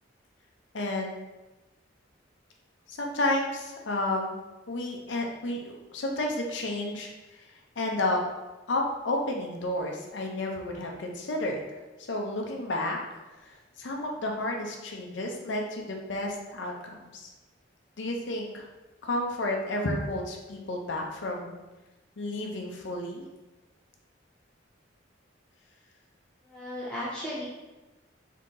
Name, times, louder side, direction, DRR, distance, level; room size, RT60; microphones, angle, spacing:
voice 1, 0.7-1.1 2.9-4.4 4.7-7.4 7.8-8.2 8.7-11.6 12.1-13.0 13.4-17.3 18.0-18.7 19.0-21.6 22.2-23.2, left 1 dB, 70° left, 1 dB, 0.6 m, -31 dB
voice 2, 26.4-27.5, left 1 dB, 5° left, -9 dB, 0.6 m, -35 dB
3.7 x 2.8 x 3.7 m, 1.1 s
head